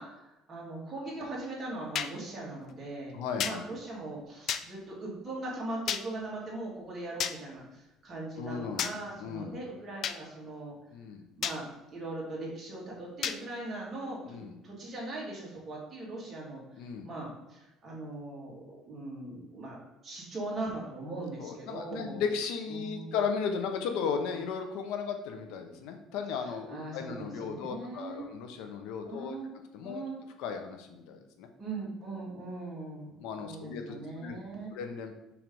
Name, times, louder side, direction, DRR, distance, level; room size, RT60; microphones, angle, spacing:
voice 1, 0.0-10.7 11.4-22.2 22.7-23.2 26.7-28.3 29.0-29.5 29.8-30.2 31.6-34.7, right 2 dB, 25° right, -4 dB, 2.2 m, -40 dB
sound 1, 1.9-2.1 3.4-3.6 4.5-4.6 5.9-6.0 7.2-7.4 8.8-8.9 10.0-10.2 11.4-11.6 13.2-13.4, left 8 dB, 45° left, 0.3 m, -31 dB
voice 2, 3.1-3.6 8.4-8.9 9.2-9.6 10.9-11.2 14.2-14.6 16.8-17.1 21.4-29.4 29.7-30.0 30.4-31.5 33.2-34.4 34.7-35.1, left 6 dB, 80° left, 6 dB, 0.8 m, -35 dB
6.0 x 3.3 x 5.3 m, 0.95 s
cardioid pair, 145°, 0 cm